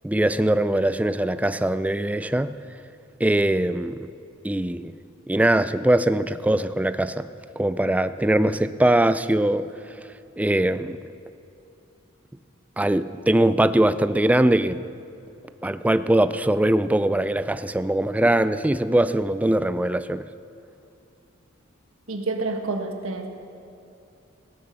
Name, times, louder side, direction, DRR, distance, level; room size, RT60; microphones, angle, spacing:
voice 1, 0.0-2.5 3.2-4.1 4.4-4.9 5.3-7.3 7.6-9.7 10.4-11.0 12.8-14.8 15.6-20.3, right 1 dB, 5° right, 13 dB, 0.3 m, -21 dB
voice 2, 22.1-23.3, right 3 dB, 75° right, 5 dB, 1.5 m, -28 dB
16.5 x 11.0 x 6.7 m, 2.7 s
head